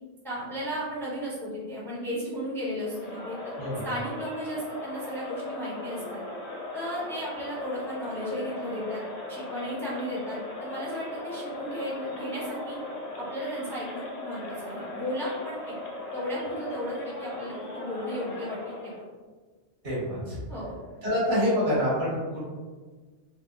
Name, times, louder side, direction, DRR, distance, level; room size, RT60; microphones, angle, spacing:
voice 1, 0.2-3.5 3.8-6.2 6.7-9.0 9.3-12.8 13.2-15.8 16.1-18.9 20.5-20.8, equal, 5° left, -7 dB, 0.6 m, -34 dB
Crowd, 2.8-19.1, left 2 dB, 45° left, 0.5 m, -38 dB
voice 2, 19.8-20.4 21.0-22.4, equal, 85° right, -9 dB, 1.8 m, -26 dB
3.5 x 2.1 x 2.6 m, 1.4 s
omnidirectional pair, 1.2 m